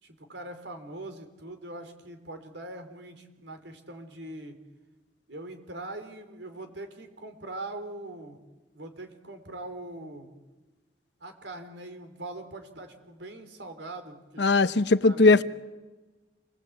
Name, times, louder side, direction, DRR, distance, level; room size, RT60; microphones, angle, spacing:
voice 1, 0.0-4.6 5.3-8.4 8.7-10.3 11.2-14.4 14.7-15.4, right 2 dB, 85° right, 3.6 m, -42 dB
voice 2, 14.4-15.4, left 3 dB, 70° left, 0.9 m, -19 dB
28.0 x 20.0 x 8.5 m
head